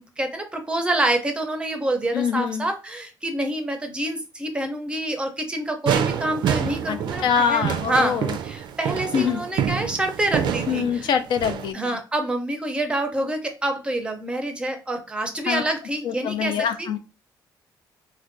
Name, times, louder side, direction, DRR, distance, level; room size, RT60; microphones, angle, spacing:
voice 1, 0.0-8.2 8.4-11.1 11.7-16.5 16.8-16.9, right 1 dB, 15° right, 5 dB, 0.5 m, -27 dB
voice 2, 2.1-2.7 6.9-8.4 9.1-9.4 10.7-12.0 15.5-15.6 16.0-17.0, left 7 dB, 75° left, 8 dB, 0.4 m, -24 dB
sound 1, 5.9-11.7, right 9 dB, 70° right, 0.3 m, -27 dB
4.4 x 2.1 x 2.5 m, 0.31 s
cardioid pair, 155°, 8 cm